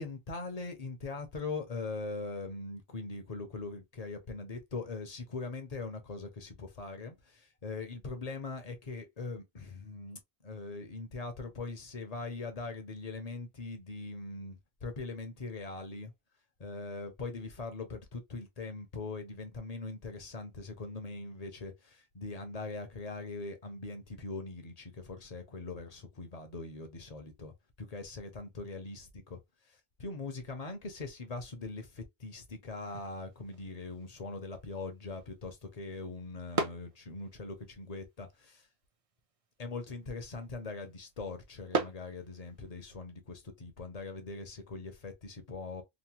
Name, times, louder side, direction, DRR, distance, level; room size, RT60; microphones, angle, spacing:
voice 1, 0.0-16.1 16.6-29.4 30.0-38.7 39.6-45.8, left 3 dB, 45° left, 0.7 m, -41 dB
sound 1, 32.8-42.8, right 4 dB, 45° right, 0.5 m, -42 dB
3.0 x 2.1 x 2.8 m
omnidirectional pair, 1.0 m